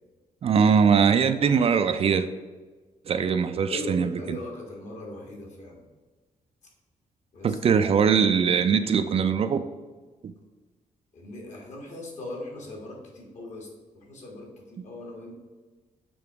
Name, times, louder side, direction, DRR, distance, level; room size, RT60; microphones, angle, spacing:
voice 1, 0.4-2.3 3.1-4.4 7.4-9.6, right 6 dB, 45° right, 10 dB, 0.4 m, -21 dB
voice 2, 3.7-5.8 7.3-7.6 11.1-13.7 13.9-15.4, left 2 dB, 60° left, 0 dB, 1.6 m, -39 dB
6.9 x 2.9 x 4.6 m, 1.3 s
cardioid pair, 100°, 14 cm